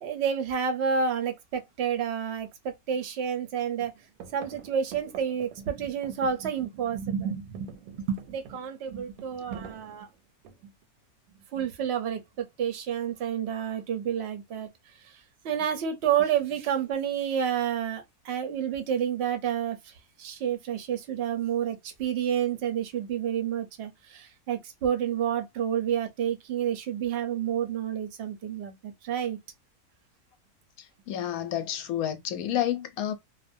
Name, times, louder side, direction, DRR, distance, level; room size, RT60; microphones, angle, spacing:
voice 1, 0.0-3.9 4.3-10.1 10.6-10.7 11.5-14.7 15.4-19.9 20.2-29.4, right 8 dB, 55° right, 0.7 m, -29 dB
sound 1, 2.4-2.5 2.9-3.5 3.8-6.9 7.2-10.8 11.8-12.3, right 7 dB, 85° right, 1.1 m, -48 dB
voice 2, 31.1-33.1, left 11 dB, 70° left, 1.0 m, -29 dB
2.5 x 2.1 x 2.5 m
omnidirectional pair, 1.7 m